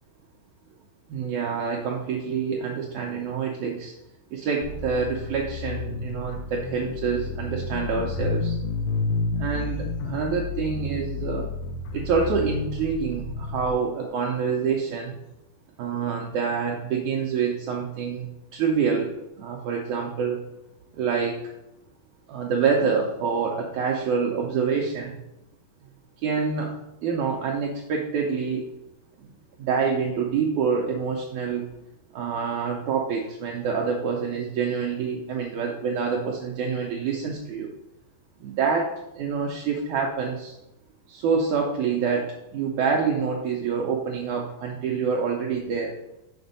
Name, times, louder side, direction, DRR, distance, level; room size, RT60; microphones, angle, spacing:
voice 1, 1.1-3.9 4.3-8.6 9.4-11.5 11.9-15.2 15.8-18.3 18.5-19.1 19.4-20.4 20.9-21.4 22.3-25.1 26.2-26.7 27.0-28.6 29.2-29.3 29.6-31.7 32.1-37.7 38.4-40.5 41.1-46.0, right 5 dB, 90° right, 0 dB, 1.6 m, -26 dB
sound 1, 4.6-13.7, left 4 dB, 80° left, 2.1 m, -31 dB
7.1 x 4.3 x 5.3 m, 0.91 s
omnidirectional pair, 4.3 m